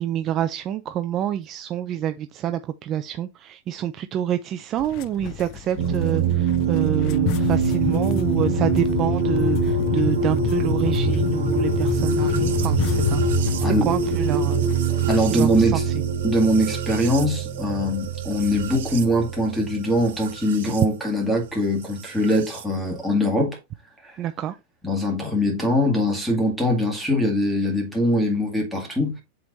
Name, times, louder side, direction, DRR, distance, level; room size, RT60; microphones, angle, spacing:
voice 1, 0.0-14.7 15.3-15.8 24.2-24.6, right 10 dB, 30° right, 0.4 m, -27 dB
sound 1, 4.8-15.2, left 13 dB, 45° left, 0.4 m, -28 dB
sound 2, 5.8-20.8 22.0-22.6, right 5 dB, 75° right, 1.5 m, -24 dB
voice 2, 13.6-13.9 15.1-15.8 16.2-23.6 24.0-24.2 24.8-29.2, equal, ahead, 2.1 m, -22 dB
7.7 x 3.5 x 3.9 m
supercardioid pair, 150°, 0 cm